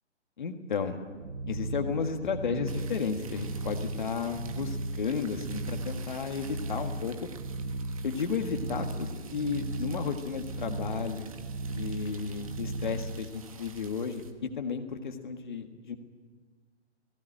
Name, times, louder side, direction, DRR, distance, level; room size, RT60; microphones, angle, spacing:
voice 1, 0.4-1.0 1.5-7.1 8.0-11.3 11.7-16.0, left 5 dB, 45° left, 5 dB, 1.8 m, -33 dB
sound 1, 1.1-13.3, right 2 dB, 55° right, 1.4 m, -36 dB
sound 2, 2.7-14.3, right 6 dB, 30° right, 1.2 m, -51 dB
19.0 x 16.5 x 10.0 m, 1.5 s
hypercardioid pair, 175°, 35 cm